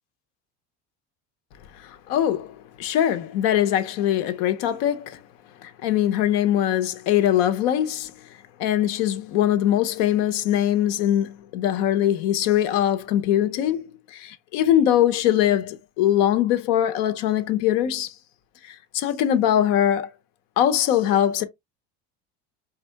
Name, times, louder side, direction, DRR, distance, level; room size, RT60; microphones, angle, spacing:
voice 1, 2.1-5.2 5.6-8.1 8.6-18.1 18.9-20.1 20.6-21.4, left 11 dB, 80° left, 1.0 m, -22 dB
5.2 x 2.6 x 3.4 m
cardioid pair, 135°, 35 cm